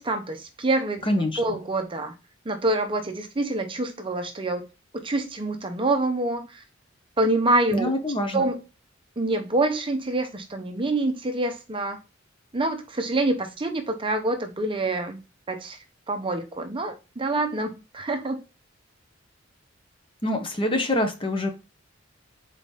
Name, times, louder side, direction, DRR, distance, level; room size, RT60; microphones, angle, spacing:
voice 1, 0.0-1.1 1.4-2.1 2.5-4.6 4.9-6.6 7.2-8.0 8.3-8.6 9.2-12.0 12.5-15.8 16.1-18.4, right 2 dB, 25° right, 0.7 m, -26 dB
voice 2, 1.1-1.6 7.7-8.5 20.2-21.5, left 1 dB, 25° left, 1.0 m, -25 dB
4.1 x 3.9 x 3.3 m
head